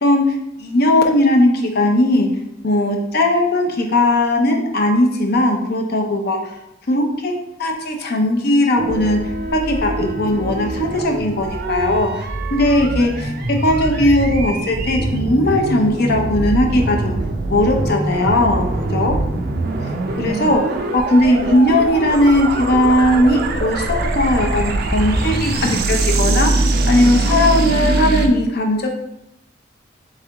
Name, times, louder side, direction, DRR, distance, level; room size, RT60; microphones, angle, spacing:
voice 1, 0.0-2.3 2.6-6.5 6.9-7.3 7.6-12.2 12.5-17.2 17.5-19.2 20.2-20.6 20.9-28.9, left 1 dB, 55° left, 2 dB, 0.6 m, -18 dB
sound 1, 8.8-28.3, right 2 dB, 55° right, 0.4 m, -22 dB
3.7 x 3.2 x 3.4 m, 0.84 s
head